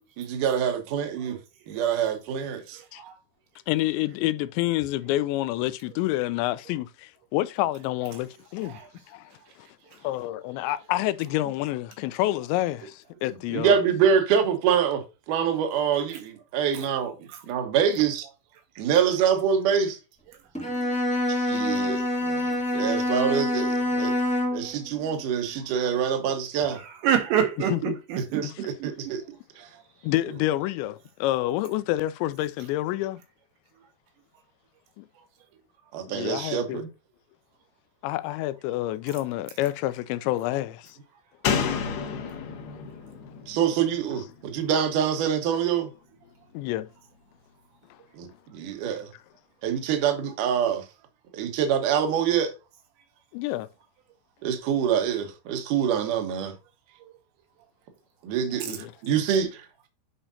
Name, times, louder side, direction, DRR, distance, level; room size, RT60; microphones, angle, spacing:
voice 1, 0.2-1.4 1.7-2.8 13.5-17.1 17.5-18.2 18.8-20.0 21.3-24.1 24.5-26.8 28.3-29.2 29.6-29.7 35.9-36.9 43.5-45.9 48.1-49.1 49.6-50.9 51.3-52.5 54.4-56.5 58.2-59.7, right 8 dB, 60° right, 2.3 m, -25 dB
voice 2, 3.7-8.8 9.1-9.3 9.6-9.7 10.0-13.8 27.7-28.0 28.4-28.6 30.0-33.2 35.0-35.1 36.1-36.8 38.0-41.0 46.5-46.9 53.3-53.7 58.7-58.9, left 15 dB, 85° left, 2.9 m, -28 dB
Bowed string instrument, 20.5-24.7, left 1 dB, 5° left, 0.6 m, -26 dB
voice 3, 26.8-28.4 28.8-28.9 58.6-58.7, right 9 dB, 80° right, 3.9 m, -26 dB
Slam, 41.4-44.9 45.2-45.3, left 7 dB, 65° left, 3.0 m, -31 dB
9.9 x 5.1 x 2.7 m
omnidirectional pair, 5.1 m